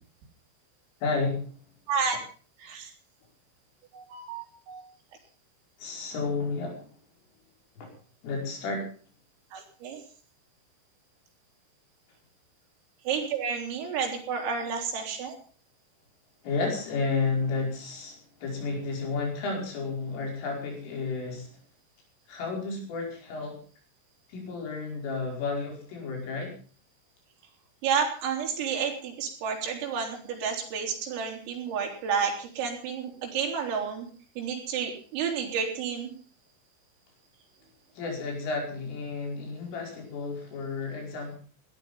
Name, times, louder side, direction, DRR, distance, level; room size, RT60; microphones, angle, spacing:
voice 1, 1.0-1.5 5.8-7.0 7.8-7.9 8.2-8.9 16.4-21.5 22.3-23.6 24.3-26.5 37.9-41.4, left 4 dB, 70° left, 1 dB, 7.7 m, -32 dB
voice 2, 3.9-4.8 9.5-10.0 13.1-15.4 27.8-34.1 34.4-36.1, right 6 dB, 80° right, 2 dB, 6.1 m, -31 dB
18.0 x 12.5 x 5.6 m, 0.42 s
omnidirectional pair, 5.9 m